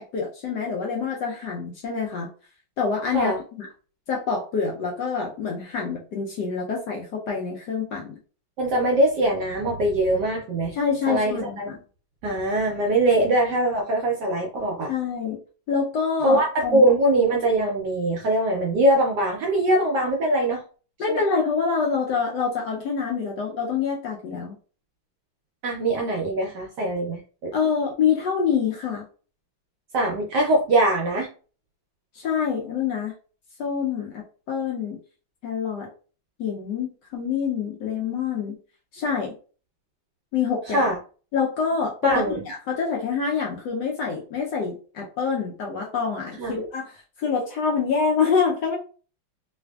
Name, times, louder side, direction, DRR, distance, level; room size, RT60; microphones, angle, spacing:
voice 1, 0.0-2.3 2.8-3.7 4.1-8.2 10.7-11.8 14.9-15.4 15.7-16.9 21.0-24.6 27.5-29.1 32.1-33.1 33.6-35.0 35.4-35.9 36.4-38.6 38.9-39.3 40.3-40.9 41.3-48.8, left 6 dB, 70° left, -1 dB, 1.0 m, -26 dB
voice 2, 8.6-10.7 11.1-11.7 12.2-14.9 16.2-20.6 21.1-21.2 25.6-27.5 29.9-31.3 40.7-41.0 42.0-42.4 46.4-46.5, right 1 dB, 70° right, 0 dB, 1.0 m, -22 dB
3.3 x 2.5 x 2.3 m, 0.37 s
omnidirectional pair, 2.3 m